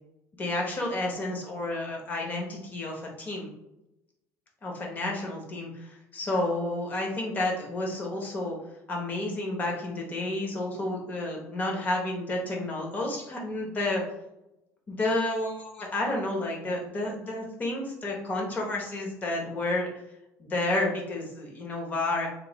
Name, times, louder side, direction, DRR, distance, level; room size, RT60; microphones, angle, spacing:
voice 1, 0.3-3.5 4.6-8.6 8.9-14.0 14.9-19.9 20.4-22.3, left 2 dB, 25° left, 0 dB, 0.9 m, -30 dB
3.1 x 2.8 x 4.0 m, 0.88 s
cardioid pair, 160°, 7 cm